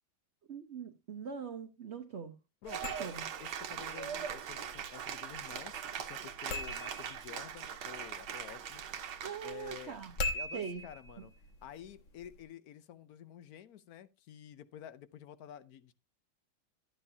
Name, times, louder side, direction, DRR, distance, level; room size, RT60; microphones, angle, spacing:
voice 1, 0.5-2.3 3.0-3.2 9.2-10.1 10.5-10.8 11.2-11.3, right 6 dB, 50° right, 0.8 m, -42 dB
voice 2, 2.6-3.1 3.4-8.8 9.4-10.0 10.3-11.3 11.6-15.9, left 10 dB, 65° left, 1.0 m, -50 dB
sound 1, 2.6-12.4, left 2 dB, 45° left, 1.3 m, -44 dB
Cheering / Applause, 2.7-10.2, right 8 dB, 80° right, 1.8 m, -41 dB
12.0 x 9.6 x 2.7 m
omnidirectional pair, 2.2 m